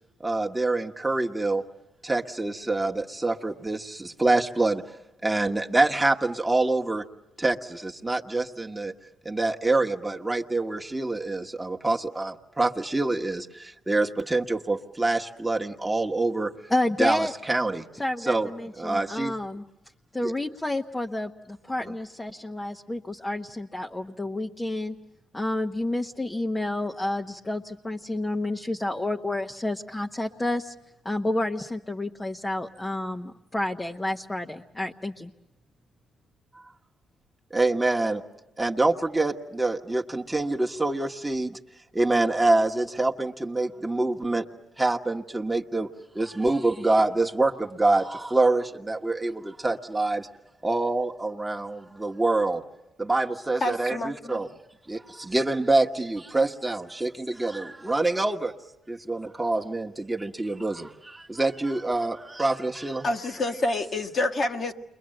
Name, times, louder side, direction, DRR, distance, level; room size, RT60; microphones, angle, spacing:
voice 1, 0.2-1.6 2.0-4.8 5.2-7.0 7.4-8.9 9.2-16.5 17.0-17.9 18.2-19.4 20.2-20.3 21.9-22.0 37.5-38.2 38.6-41.6 41.9-44.4 44.8-45.9 46.1-50.3 50.6-52.6 53.0-54.5 54.9-58.5 58.9-63.1, right 2 dB, 10° right, 1 dB, 1.5 m, -26 dB
voice 2, 16.7-17.3 18.0-19.6 20.1-25.0 25.3-30.7 31.0-35.3, left 1 dB, 15° left, 2 dB, 1.1 m, -30 dB
voice 3, 53.6-54.4 63.0-64.7, left 2 dB, 45° left, 3 dB, 1.8 m, -27 dB
29.5 x 23.5 x 7.8 m, 0.91 s
cardioid pair, 90°, 0 cm